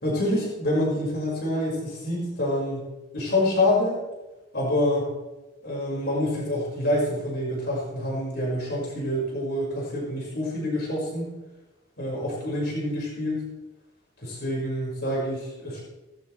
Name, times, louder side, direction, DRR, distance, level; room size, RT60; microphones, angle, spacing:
voice 1, 0.0-2.8 3.1-4.0 4.5-5.1 5.6-11.3 12.0-13.4 14.2-15.8, left 1 dB, 60° left, -4 dB, 5.7 m, -26 dB
18.5 x 13.5 x 3.4 m, 1.1 s
head